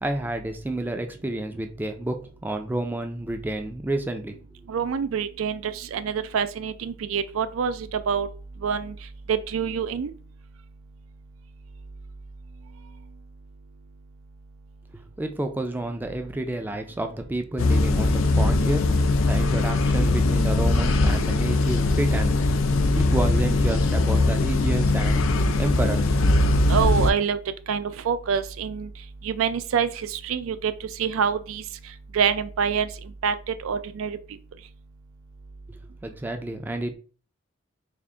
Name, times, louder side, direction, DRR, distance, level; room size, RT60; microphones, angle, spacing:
voice 1, 0.0-4.4 14.9-18.8 19.3-22.4 22.9-25.3 25.6-26.1 35.7-36.9, right 1 dB, 10° right, 0.3 m, -30 dB
voice 2, 4.7-8.3 8.6-8.9 9.3-10.1 26.7-27.4 27.7-28.9 29.2-30.7 31.0-31.6 32.1-32.9 33.2-34.2, right 7 dB, 85° right, 0.4 m, -26 dB
sound 1, 17.6-27.1, left 2 dB, 75° left, 0.4 m, -21 dB
3.5 x 2.5 x 3.7 m
head